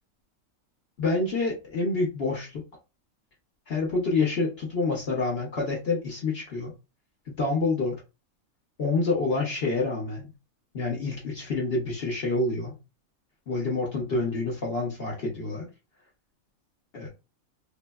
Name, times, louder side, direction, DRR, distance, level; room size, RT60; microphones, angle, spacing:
voice 1, 1.0-2.6 3.7-6.7 7.3-8.0 8.8-10.3 10.7-12.8 13.5-15.7 16.9-17.1, left 3 dB, 50° left, -2 dB, 0.8 m, -27 dB
3.4 x 2.1 x 2.2 m, 0.28 s
omnidirectional pair, 1.5 m